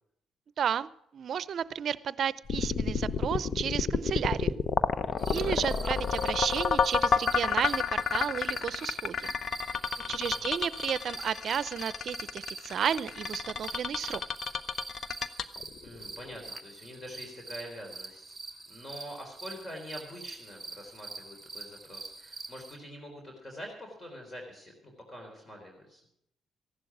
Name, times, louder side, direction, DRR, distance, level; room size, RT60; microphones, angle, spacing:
voice 1, 0.6-4.5 5.3-9.3 10.1-14.2, right 8 dB, 60° right, 18 dB, 0.6 m, -32 dB
sound 1, 2.5-16.6, left 6 dB, 55° left, 0.9 m, -30 dB
sound 2, 5.2-22.8, right 3 dB, 20° right, 2.7 m, -45 dB
voice 2, 10.1-10.5 15.8-18.4 18.7-26.0, equal, 25° left, 2 dB, 3.9 m, -45 dB
15.5 x 11.5 x 6.1 m, 0.74 s
cardioid pair, 90°, 0 cm